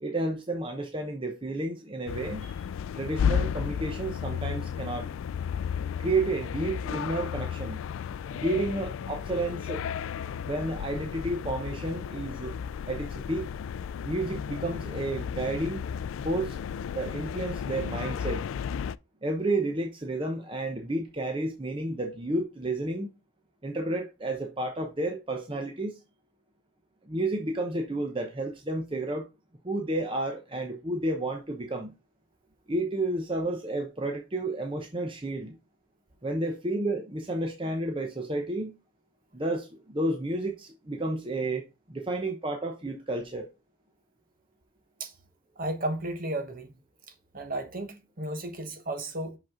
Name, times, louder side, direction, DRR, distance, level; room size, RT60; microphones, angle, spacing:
voice 1, 0.0-2.6 2.9-5.1 6.0-7.8 8.3-9.8 10.4-12.5 12.9-13.5 14.0-15.8 16.2-16.6 16.9-18.4 19.2-23.1 23.6-26.0 27.1-29.3 29.6-31.9 32.7-35.5 36.2-38.7 39.3-43.5, right 2 dB, 25° right, 0.8 m, -31 dB
sound 1, 2.1-19.0, left 7 dB, 75° left, 0.3 m, -33 dB
voice 2, 45.6-46.7 47.3-49.4, right 1 dB, 45° right, 1.1 m, -33 dB
5.9 x 5.3 x 3.6 m
head